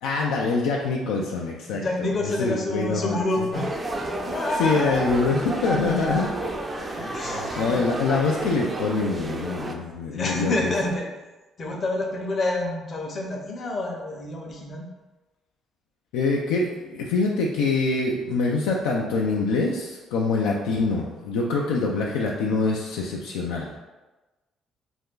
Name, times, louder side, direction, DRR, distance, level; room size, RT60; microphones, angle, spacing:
voice 1, 0.0-3.2 3.5-3.6 4.6-6.3 6.8-10.7 16.1-23.7, left 3 dB, 85° left, -2 dB, 0.3 m, -25 dB
voice 2, 1.7-3.9 4.3-5.1 7.1-7.8 10.1-11.1 11.6-14.8, left 2 dB, 50° left, 0 dB, 0.7 m, -28 dB
sound 1, 3.5-9.7, right 2 dB, 30° right, 0.4 m, -31 dB
2.6 x 2.3 x 3.6 m, 1.1 s
supercardioid pair, 65°, 0 cm